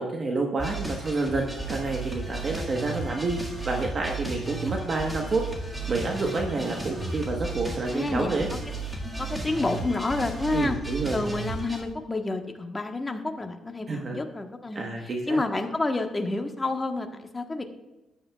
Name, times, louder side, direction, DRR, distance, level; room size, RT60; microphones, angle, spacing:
voice 1, 0.0-3.4 3.6-8.5 10.5-11.2 13.9-14.2 14.7-15.4, right 3 dB, 40° right, 1 dB, 1.2 m, -29 dB
sound 1, 0.6-11.8, right 2 dB, 10° right, 1.8 m, -34 dB
voice 2, 7.9-8.6 9.0-10.8 11.1-17.7, left 2 dB, 20° left, 5 dB, 1.2 m, -29 dB
13.5 x 9.9 x 2.4 m, 1.0 s
cardioid pair, 90°, 0 cm